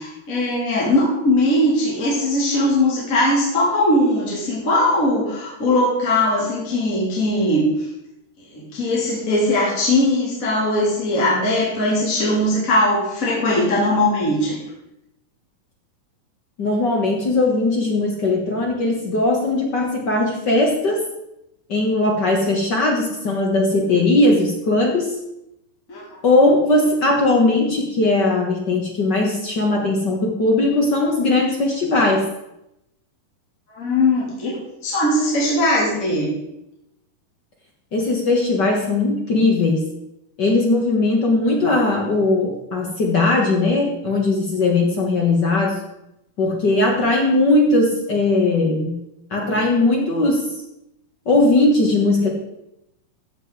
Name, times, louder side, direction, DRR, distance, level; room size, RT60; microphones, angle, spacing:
voice 1, 0.0-7.9 8.5-14.6 25.9-26.0 26.4-26.5 33.7-34.6 34.8-36.3, left 1 dB, 25° left, -6 dB, 3.4 m, -20 dB
voice 2, 16.6-21.0 21.7-25.1 26.2-32.3 37.9-39.8 40.4-45.8 46.4-49.0 49.3-50.4 51.2-52.3, left 2 dB, 50° left, -1 dB, 1.3 m, -19 dB
14.5 x 7.7 x 4.8 m, 0.87 s
omnidirectional pair, 4.0 m